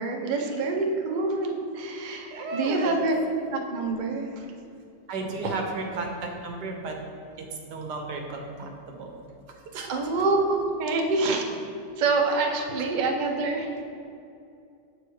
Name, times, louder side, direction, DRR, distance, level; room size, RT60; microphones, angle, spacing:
voice 1, 0.0-3.2 3.5-4.5 9.9-11.6 12.0-13.8, right 3 dB, 50° right, 2 dB, 0.5 m, -26 dB
voice 2, 2.3-3.0 5.1-7.0 7.4-9.2 9.7-9.9, right 3 dB, 85° right, 3 dB, 1.5 m, -33 dB
7.9 x 4.7 x 4.8 m, 2.5 s
omnidirectional pair, 1.8 m